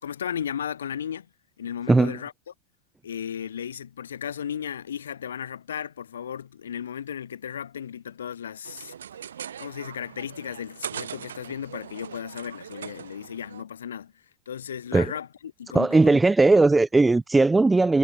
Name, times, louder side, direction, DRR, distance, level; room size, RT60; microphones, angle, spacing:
voice 1, 0.0-1.3 1.6-2.5 3.0-8.9 9.6-14.1 14.5-16.2, left 8 dB, 70° left, 2.3 m, -35 dB
voice 2, 1.9-2.2 14.9-15.1 15.7-18.0, right 3 dB, 10° right, 0.3 m, -18 dB
sound 1, 8.6-13.6, right 8 dB, 65° right, 1.4 m, -40 dB
figure-of-eight pair, 85°, 0 cm